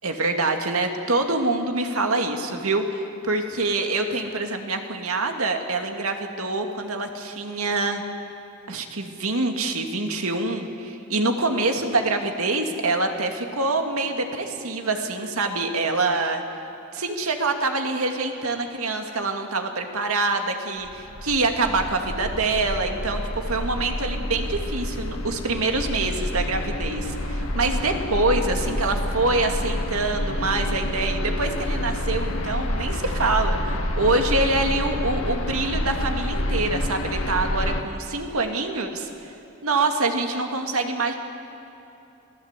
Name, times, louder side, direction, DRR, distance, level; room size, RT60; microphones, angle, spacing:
voice 1, 0.0-8.0 8.7-16.4 16.9-39.1 39.6-41.2, right 3 dB, 80° right, 4 dB, 2.3 m, -25 dB
sound 1, 20.8-37.8, left 1 dB, 65° left, 1.7 m, -28 dB
27.5 x 18.0 x 8.2 m, 3.0 s
head